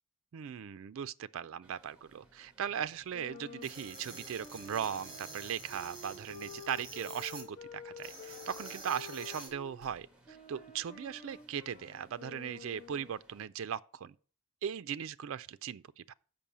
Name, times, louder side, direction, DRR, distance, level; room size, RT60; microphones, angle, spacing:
voice 1, 0.3-14.1 14.6-16.1, right 8 dB, 60° right, 0.3 m, -39 dB
sound 1, 1.6-13.5, right 1 dB, 5° right, 1.6 m, -64 dB
sound 2, 3.1-9.8 10.3-13.2, left 5 dB, 30° left, 0.9 m, -50 dB
sound 3, 3.6-7.4 8.0-9.5, right 3 dB, 25° right, 3.1 m, -48 dB
6.9 x 5.4 x 7.2 m
head